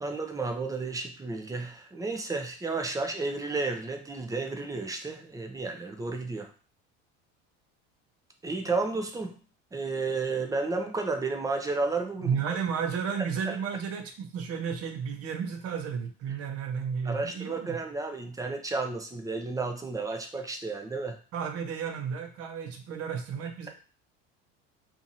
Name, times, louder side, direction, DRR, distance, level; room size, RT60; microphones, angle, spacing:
voice 1, 0.0-6.5 8.4-9.4 9.7-12.6 13.5-13.6 17.0-21.2, right 3 dB, 10° right, 4 dB, 0.4 m, -32 dB
voice 2, 12.2-17.8 21.3-23.7, right 6 dB, 50° right, 4 dB, 0.7 m, -32 dB
2.8 x 2.5 x 2.6 m, 0.38 s
supercardioid pair, 105°, 30 cm